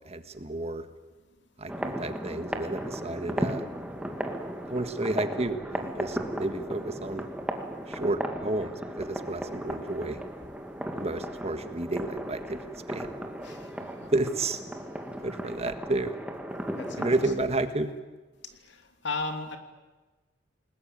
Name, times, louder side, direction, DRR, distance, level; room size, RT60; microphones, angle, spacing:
voice 1, 0.0-0.9 1.6-3.6 4.7-7.2 7.9-10.2 11.0-12.6 12.9-13.1 14.1-14.6 15.2-16.1 17.0-17.9, right 2 dB, 35° right, 9 dB, 1.6 m, -31 dB
sound 1, 1.7-17.3, equal, 5° right, 2.1 m, -36 dB
voice 2, 13.4-13.9 16.8-17.1 18.7-18.8 19.0-19.6, left 3 dB, 65° left, 6 dB, 3.0 m, -35 dB
28.5 x 20.0 x 9.0 m, 1.3 s
head